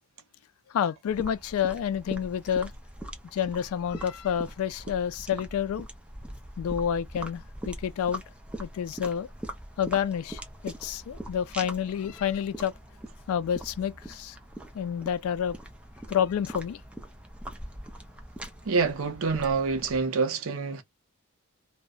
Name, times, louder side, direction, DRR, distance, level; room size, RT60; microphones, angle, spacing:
voice 1, 0.7-2.7 3.3-5.9 6.6-8.2 8.6-9.3 9.8-12.7 13.3-14.4 14.7-15.6 16.1-16.8, left 8 dB, 75° left, 0.3 m, -29 dB
sound 1, 1.1-20.1, right 1 dB, 5° right, 0.4 m, -42 dB
voice 2, 18.6-20.8, right 4 dB, 70° right, 0.6 m, -26 dB
2.7 x 2.0 x 2.2 m
head